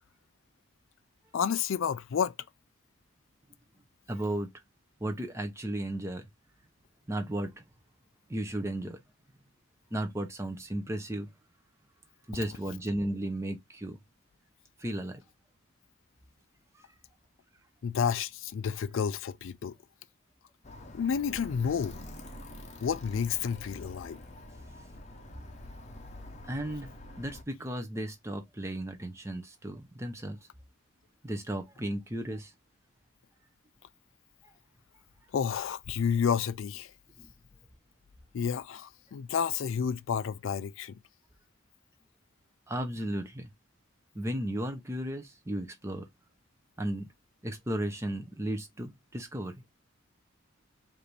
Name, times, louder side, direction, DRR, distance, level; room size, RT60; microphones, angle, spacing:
voice 1, 1.3-2.3 17.8-19.7 20.9-22.0 22.8-24.2 35.3-36.9 38.3-41.0, left 7 dB, 70° left, 0.4 m, -30 dB
voice 2, 4.1-4.5 5.0-6.3 7.1-7.5 8.3-9.0 9.9-11.3 12.3-14.0 14.8-15.2 26.5-26.9 27.1-30.4 31.2-32.5 37.2-37.3 42.7-43.5 44.1-46.1 46.8-47.1 47.4-49.6, right 1 dB, 15° right, 0.7 m, -34 dB
Alarm, 20.6-27.4, left 1 dB, 35° left, 0.7 m, -46 dB
4.9 x 2.6 x 3.2 m
head